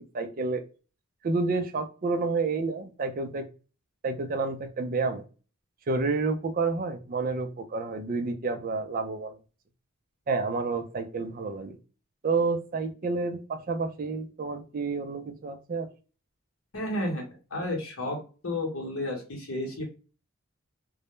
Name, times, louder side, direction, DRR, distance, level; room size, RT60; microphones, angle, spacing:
voice 1, 0.1-0.6 1.2-3.5 4.0-5.2 5.9-9.4 10.3-11.8 12.2-15.9, right 4 dB, 40° right, 7 dB, 0.3 m, -29 dB
voice 2, 16.7-17.2 17.5-18.2 18.4-19.8, left 1 dB, 65° left, 0 dB, 0.9 m, -31 dB
2.1 x 2.0 x 2.9 m, 0.34 s
head